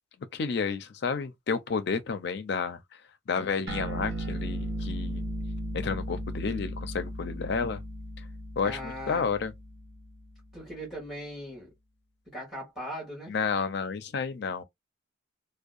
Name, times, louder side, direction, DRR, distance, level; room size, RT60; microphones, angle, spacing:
voice 1, 0.3-3.0 3.3-5.2 5.7-7.8 8.2-8.3 8.6-9.5 13.3-14.6, left 5 dB, 55° left, 0.4 m, -31 dB
sound 1, 3.7-10.5, right 1 dB, 55° right, 0.6 m, -36 dB
voice 2, 8.6-9.3 10.5-11.7 12.3-13.3, equal, ahead, 1.3 m, -39 dB
2.7 x 2.1 x 2.4 m
head